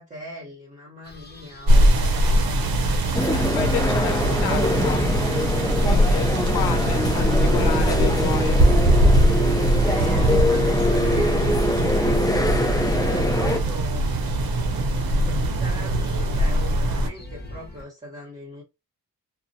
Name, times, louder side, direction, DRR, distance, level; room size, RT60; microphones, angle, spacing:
voice 1, 0.0-2.0 6.1-6.4 9.8-14.1 14.7-14.8 15.2-18.6, equal, 20° right, 1.0 m, -41 dB
sound 1, 1.0-17.8, left 1 dB, 25° left, 0.9 m, -40 dB
sound 2, 1.7-17.1, right 1 dB, 70° right, 0.7 m, -21 dB
Museum Cafe, 3.1-13.6, left 1 dB, 10° left, 0.5 m, -24 dB
voice 2, 3.3-5.0 5.8-6.3 6.5-8.6, left 10 dB, 80° left, 0.6 m, -31 dB
2.4 x 2.0 x 2.7 m
cardioid pair, 85°, 37 cm